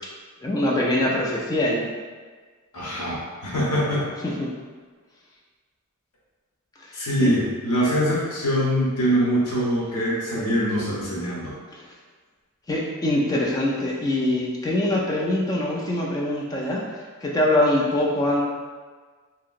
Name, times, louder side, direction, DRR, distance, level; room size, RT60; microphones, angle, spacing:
voice 1, 0.4-1.9 4.2-4.5 7.2-7.3 12.7-16.8 17.2-18.4, left 1 dB, 15° left, -3 dB, 0.3 m, -23 dB
voice 2, 2.7-4.1 6.9-11.5, equal, 80° left, -7 dB, 0.9 m, -23 dB
2.8 x 2.8 x 2.4 m, 1.5 s
head